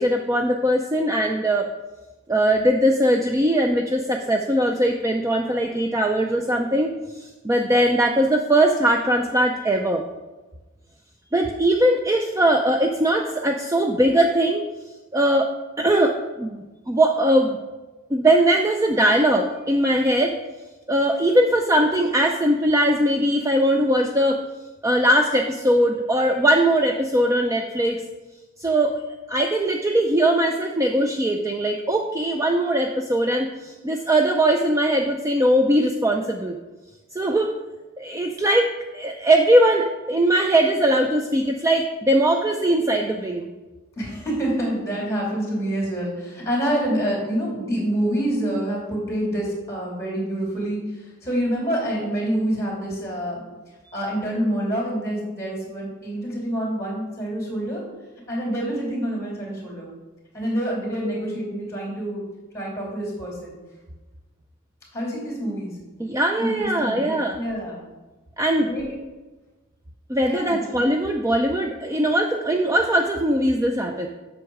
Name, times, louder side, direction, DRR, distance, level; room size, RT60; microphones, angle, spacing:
voice 1, 0.0-1.7 2.3-10.0 11.3-14.6 15.1-15.5 15.8-17.6 18.1-20.4 20.9-24.4 24.8-28.0 28.6-28.9 29.3-36.6 37.1-37.5 38.0-43.5 66.0-67.4 68.4-68.7 70.1-74.1, right 1 dB, 15° right, 3 dB, 0.4 m, -20 dB
voice 2, 44.0-53.4 53.9-57.8 58.3-59.9 60.3-62.2 62.5-63.6 64.9-65.7 66.4-67.0 67.3-67.8 68.7-68.9 70.3-70.7, right 1 dB, 15° left, -2 dB, 2.9 m, -27 dB
7.7 x 6.3 x 4.7 m, 1.2 s
head